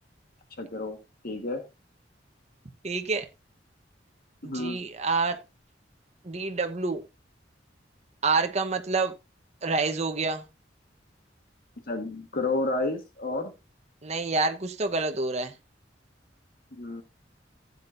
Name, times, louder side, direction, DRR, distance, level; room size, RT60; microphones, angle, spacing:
voice 1, 0.6-1.0 1.2-1.6 4.4-4.8 11.9-13.5 16.8-17.0, left 2 dB, 55° left, 1.5 m, -30 dB
voice 2, 2.8-3.3 4.4-5.4 6.2-7.0 8.2-9.1 9.6-10.4 14.0-15.5, right 3 dB, 40° right, 1.1 m, -27 dB
15.0 x 8.4 x 2.6 m
head